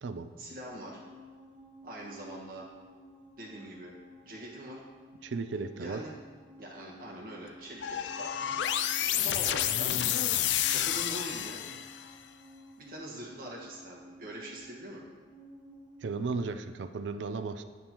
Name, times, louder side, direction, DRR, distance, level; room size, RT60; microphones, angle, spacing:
voice 1, 0.4-1.0 1.8-2.7 3.4-3.9 4.2-4.8 5.8-6.1 6.6-8.3 9.1-9.9 10.7-11.6 12.8-15.0, right 1 dB, 50° right, -4 dB, 1.4 m, -43 dB
sound 1, 0.7-16.1, equal, 10° right, 1.5 m, -54 dB
voice 2, 5.2-6.0 16.0-17.6, right 4 dB, 80° right, 9 dB, 0.4 m, -35 dB
sound 2, 7.8-12.1, left 11 dB, 75° left, 0.3 m, -30 dB
9.4 x 5.3 x 2.9 m, 1.5 s
head